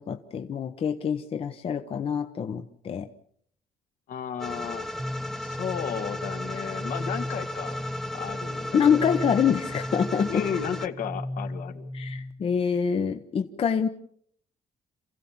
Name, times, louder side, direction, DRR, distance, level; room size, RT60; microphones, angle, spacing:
voice 1, 0.0-3.1 8.7-10.4 11.9-13.9, left 7 dB, 40° left, 8 dB, 1.0 m, -26 dB
voice 2, 4.1-4.9 5.4-7.8 8.1-8.8 9.0-9.2 10.3-11.9, left 8 dB, 70° left, 7 dB, 1.9 m, -33 dB
sound 1, 4.4-10.9, left 1 dB, 5° left, 0.9 m, -35 dB
sound 2, 5.0-12.5, left 1 dB, 15° right, 1.1 m, -36 dB
28.0 x 16.0 x 7.2 m, 0.65 s
cardioid pair, 150°, 14 cm